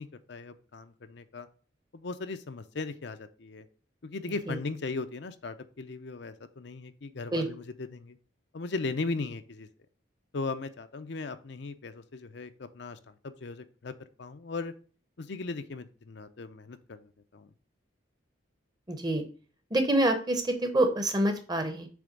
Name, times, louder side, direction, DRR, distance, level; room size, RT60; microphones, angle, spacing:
voice 1, 0.0-1.5 1.9-3.7 4.0-7.6 7.9-8.2 8.5-9.7 10.3-13.0 13.2-13.9 14.2-14.7 15.2-17.5, left 3 dB, 60° left, 10 dB, 0.6 m, -37 dB
voice 2, 18.9-19.2 19.7-21.9, right 1 dB, 20° right, 7 dB, 0.9 m, -26 dB
7.0 x 3.4 x 5.2 m, 0.40 s
head